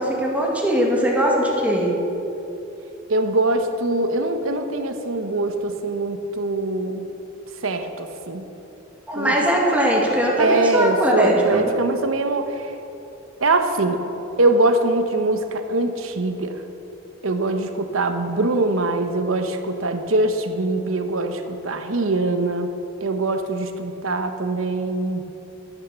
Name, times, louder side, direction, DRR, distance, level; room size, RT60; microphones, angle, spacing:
voice 1, 0.0-1.9 9.1-11.7, equal, 5° right, -3 dB, 1.9 m, -20 dB
voice 2, 3.1-7.1 7.6-8.4 9.1-9.4 10.4-12.7 13.4-14.0 14.4-16.5 17.2-22.7 23.0-25.2, right 2 dB, 80° right, 7 dB, 1.0 m, -22 dB
11.5 x 8.5 x 6.9 m, 3.0 s
head